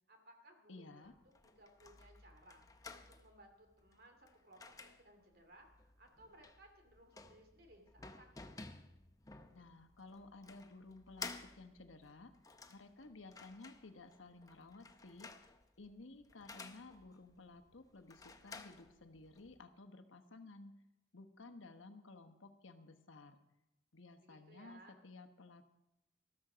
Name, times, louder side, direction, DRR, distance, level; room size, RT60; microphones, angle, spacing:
voice 1, 0.1-2.7 2.9-8.3 24.2-25.0, right 1 dB, 50° right, 4 dB, 2.6 m, -62 dB
voice 2, 0.7-1.1 9.5-12.3 12.7-20.8 21.1-23.4 23.9-25.7, left 3 dB, 85° left, 8 dB, 1.2 m, -55 dB
sound 1, 1.1-19.6, left 4 dB, 20° left, 0.6 m, -55 dB
13.5 x 13.0 x 5.1 m, 0.94 s
head